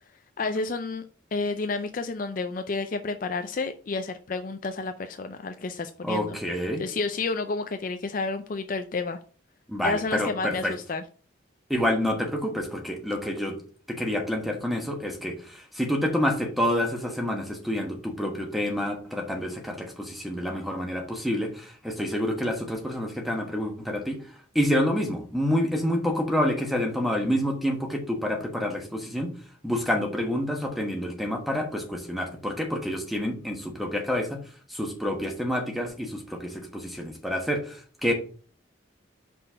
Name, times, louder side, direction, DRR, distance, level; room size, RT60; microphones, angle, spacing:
voice 1, 0.4-1.0 1.3-6.4 6.8-9.2 9.8-11.0, left 3 dB, 40° left, 0.4 m, -30 dB
voice 2, 6.0-6.8 9.7-10.7 11.7-13.6 13.9-24.2 24.5-29.3 29.6-34.4 34.7-38.1, equal, ahead, 1.2 m, -28 dB
5.4 x 4.2 x 5.5 m
head